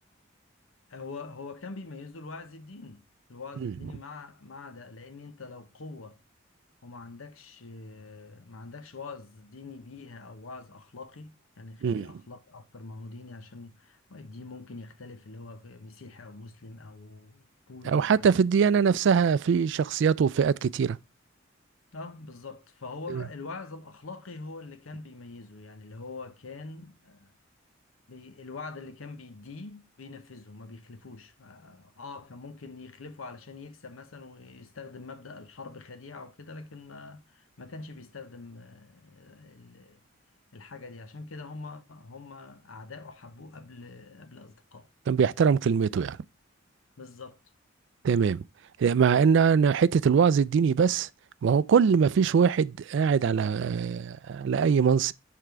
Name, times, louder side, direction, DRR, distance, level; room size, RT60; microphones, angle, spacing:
voice 1, 0.9-3.0 3.3-6.2 6.8-18.4 21.9-27.3 28.1-40.0 40.5-44.9 47.0-47.4, left 3 dB, 90° left, 0.9 m, -44 dB
voice 2, 17.9-21.0 23.1-23.2 45.1-46.2 48.0-48.4 48.8-51.1 51.4-55.1, right 6 dB, 65° right, 0.3 m, -22 dB
6.7 x 3.7 x 4.5 m
head